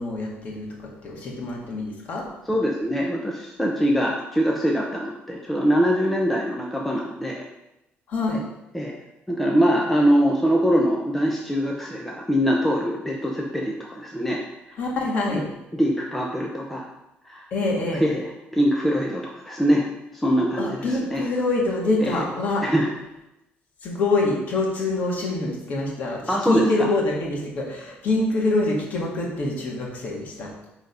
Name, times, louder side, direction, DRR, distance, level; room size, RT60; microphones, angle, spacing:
voice 1, 0.0-2.2 8.1-8.4 14.8-15.5 17.5-18.0 20.6-22.6 23.8-30.5, left 2 dB, 45° left, -2 dB, 2.0 m, -25 dB
voice 2, 2.5-7.4 8.7-8.9 9.3-14.4 15.3-15.4 15.7-16.8 17.2-17.5 17.9-19.8 20.1-21.3 22.0-22.2 22.6-22.9 26.3-26.9, equal, 5° left, -1 dB, 0.7 m, -23 dB
9.0 x 4.0 x 5.4 m, 0.91 s
cardioid pair, 165°, 4 cm